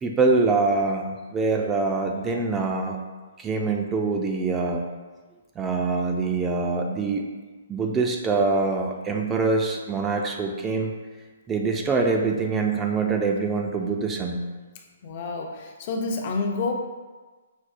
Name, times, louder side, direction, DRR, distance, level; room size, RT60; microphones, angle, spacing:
voice 1, 0.0-1.0 1.3-3.0 3.4-4.9 5.6-7.2 7.7-10.9 11.5-14.4, right 3 dB, 15° right, 2 dB, 0.3 m, -24 dB
voice 2, 15.0-16.7, left 3 dB, 45° left, 2 dB, 0.5 m, -28 dB
6.0 x 2.0 x 2.4 m, 1.3 s
hypercardioid pair, 145°, 0 cm